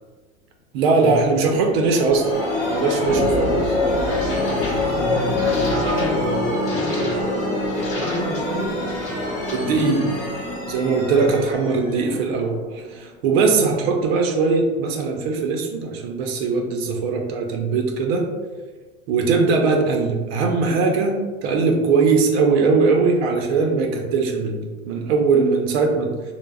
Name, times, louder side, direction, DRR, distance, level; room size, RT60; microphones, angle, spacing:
voice 1, 0.7-2.3 2.7-3.8 9.5-10.1 10.7-18.2 19.1-21.1 21.4-26.1, right 4 dB, 50° right, 3 dB, 0.4 m, -20 dB
sound 1, 1.5-13.0, left 2 dB, 55° left, 1.1 m, -25 dB
voice 2, 4.9-8.7 11.1-11.4 13.6-13.8, equal, 15° left, -8 dB, 0.3 m, -29 dB
3.3 x 2.0 x 2.2 m, 1.4 s
supercardioid pair, 135°, 42 cm